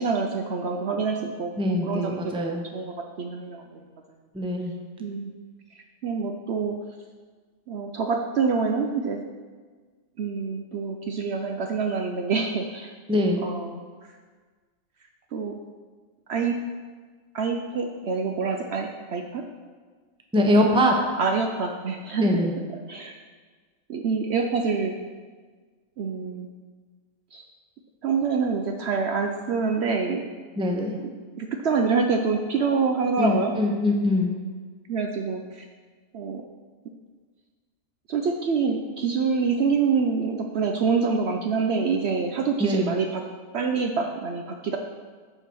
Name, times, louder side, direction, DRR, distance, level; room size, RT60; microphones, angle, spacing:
voice 1, 0.0-3.8 5.0-5.3 6.0-6.7 7.7-9.2 10.2-12.9 13.4-13.8 15.3-15.5 16.3-16.6 17.3-19.5 21.2-22.4 22.9-23.2 23.9-25.0 26.0-26.5 27.3-27.4 28.0-30.3 31.0-33.6 34.9-35.7 36.1-36.4 38.1-43.2 43.5-44.8, right 5 dB, 60° right, 3 dB, 0.8 m, -26 dB
voice 2, 1.6-2.6 4.3-4.8 13.1-13.5 20.3-20.9 22.2-22.5 30.6-31.0 33.2-34.3 42.6-42.9, left 1 dB, 5° right, 2 dB, 0.6 m, -23 dB
8.7 x 4.6 x 6.2 m, 1.5 s
omnidirectional pair, 1.4 m